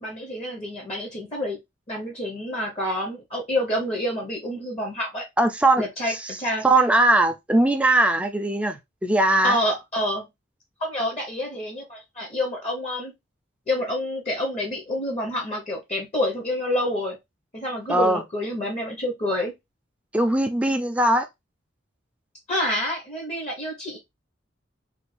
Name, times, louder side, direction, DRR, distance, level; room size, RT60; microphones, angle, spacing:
voice 1, 0.0-1.6 1.9-5.2 5.8-6.6 9.4-10.3 10.8-13.1 13.7-17.2 17.5-19.5 22.5-24.0, left 1 dB, 35° left, 0.9 m, -28 dB
voice 2, 5.4-5.8 6.1-6.2 6.6-9.6 17.9-18.2 20.1-21.3, right 2 dB, 5° right, 0.4 m, -20 dB
3.4 x 2.3 x 3.2 m
head